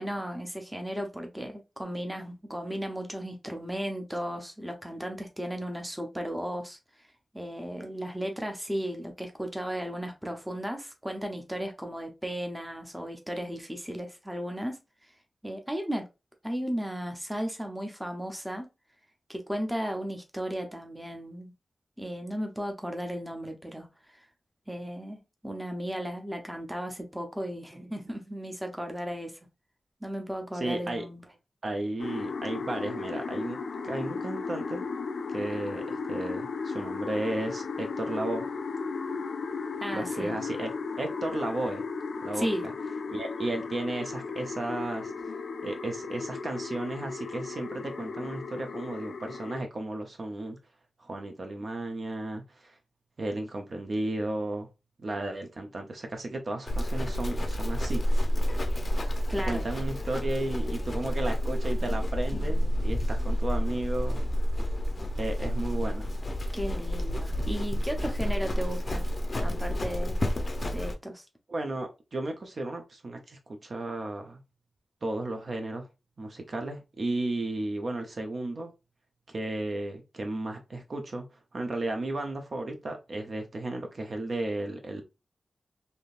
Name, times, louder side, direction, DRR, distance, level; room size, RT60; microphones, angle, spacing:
voice 1, 0.0-6.8 7.3-14.8 15.4-16.1 16.4-18.7 19.3-21.5 22.0-24.2 24.7-29.4 30.0-31.2 39.8-40.3 42.3-42.7 59.3-59.6 66.5-69.1 69.4-70.2 70.7-71.2, equal, 5° right, 0.6 m, -35 dB
voice 2, 30.5-31.0 31.6-33.6 33.8-34.8 35.3-38.4 39.9-40.7 41.0-41.8 42.2-42.7 43.1-45.3 45.6-50.6 51.0-52.8 53.2-54.7 55.0-58.0 59.4-64.2 65.2-66.1 71.5-74.4 75.0-75.9 76.2-78.7 79.3-81.3 81.5-85.0, right 2 dB, 50° right, 0.6 m, -34 dB
sound 1, 32.0-49.6, left 4 dB, 85° left, 0.3 m, -35 dB
Livestock farm animals working animals, 56.7-70.9, equal, 35° left, 0.5 m, -29 dB
3.5 x 2.7 x 2.4 m
wide cardioid pair, 130°, 0 cm